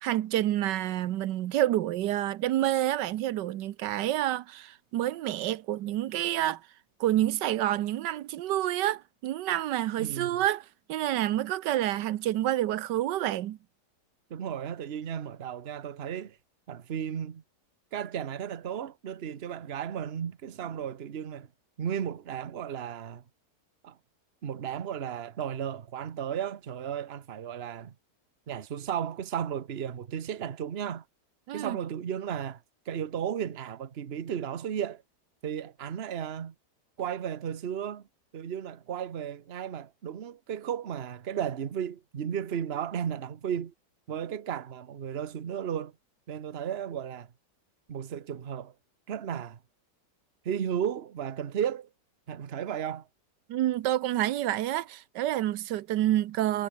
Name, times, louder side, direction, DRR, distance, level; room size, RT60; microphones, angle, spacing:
voice 1, 0.0-6.6 7.0-13.6 31.5-31.8 53.5-56.7, right 13 dB, 90° right, 1.4 m, -28 dB
voice 2, 10.0-10.4 14.3-16.4 16.7-17.4 17.9-21.5 21.8-23.2 23.8-24.0 24.4-27.9 28.5-31.0 31.5-35.0 35.4-36.5 37.0-38.1 38.3-43.7 44.1-45.9 46.3-47.3 47.9-48.7 49.1-49.6 50.4-51.9 52.3-53.1, right 9 dB, 40° right, 1.1 m, -34 dB
omnidirectional pair, 1.8 m